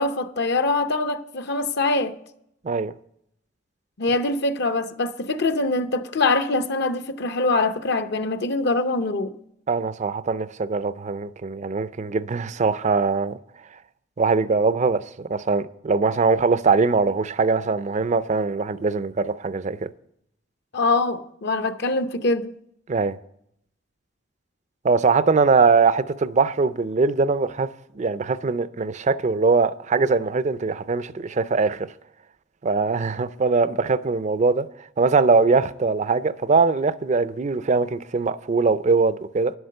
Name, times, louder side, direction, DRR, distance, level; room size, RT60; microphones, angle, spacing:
voice 1, 0.0-2.2 4.0-9.4 20.7-22.5, left 3 dB, 60° left, 0.7 m, -23 dB
voice 2, 9.7-13.4 14.2-19.9 22.9-23.2 24.8-27.7 27.9-31.9 32.6-34.7 35.0-39.5, right 4 dB, 40° right, 0.4 m, -21 dB
11.0 x 8.0 x 6.5 m
head